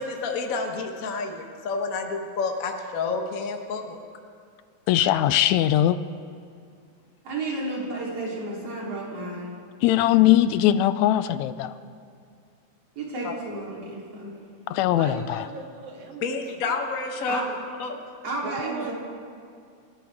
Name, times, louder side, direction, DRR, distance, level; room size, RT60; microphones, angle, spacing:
voice 1, 0.0-4.0 13.2-13.3 16.2-17.4 17.8-18.0, left 4 dB, 60° left, 3 dB, 0.9 m, -29 dB
voice 2, 4.9-6.0 9.8-11.7 14.7-15.4, left 13 dB, 80° left, 13 dB, 1.8 m, -20 dB
voice 3, 7.2-9.5 13.0-14.4 17.2-17.5 18.2-18.9, right 2 dB, 55° right, -5 dB, 4.5 m, -32 dB
voice 4, 14.9-16.8 18.4-18.9, right 4 dB, 85° right, 1 dB, 3.3 m, -37 dB
29.5 x 13.5 x 3.6 m, 2.3 s
omnidirectional pair, 3.3 m